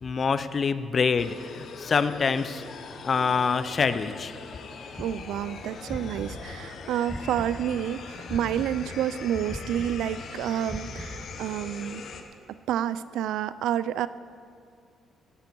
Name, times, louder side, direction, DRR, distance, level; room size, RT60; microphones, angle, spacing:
voice 1, 0.0-2.6 3.0-4.3 8.2-8.3, left 5 dB, 45° left, 13 dB, 0.6 m, -26 dB
sound 1, 1.2-12.2, left 5 dB, 65° left, 1.1 m, -42 dB
sound 2, 4.9-7.9 8.3-11.6, equal, 10° left, 1.4 m, -40 dB
voice 2, 5.0-12.1 12.7-14.1, right 10 dB, 85° right, 16 dB, 0.4 m, -29 dB
15.5 x 10.5 x 4.6 m, 2.3 s
cardioid pair, 90°, 0 cm